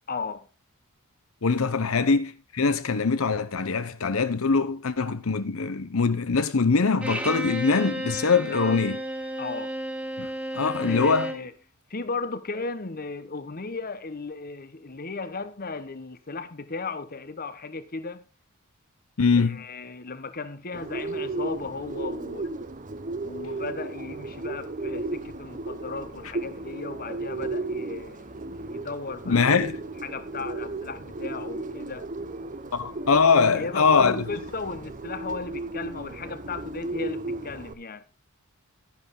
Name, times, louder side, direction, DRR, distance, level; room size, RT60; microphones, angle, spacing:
voice 1, 0.1-0.5 1.8-1.9 8.5-8.8 9.4-9.7 10.6-11.5 11.9-18.2 19.3-22.5 23.2-29.6 30.0-32.1 33.4-38.0, left 4 dB, 45° left, 1.1 m, -36 dB
voice 2, 1.4-9.0 10.2-10.3 10.5-11.3 19.2-19.6 29.3-29.8 32.7-34.2, left 4 dB, 70° left, 0.8 m, -23 dB
Bowed string instrument, 7.0-11.5, equal, 5° right, 1.9 m, -33 dB
Bird, 20.7-37.7, right 2 dB, 35° right, 0.9 m, -35 dB
12.0 x 10.5 x 3.8 m
head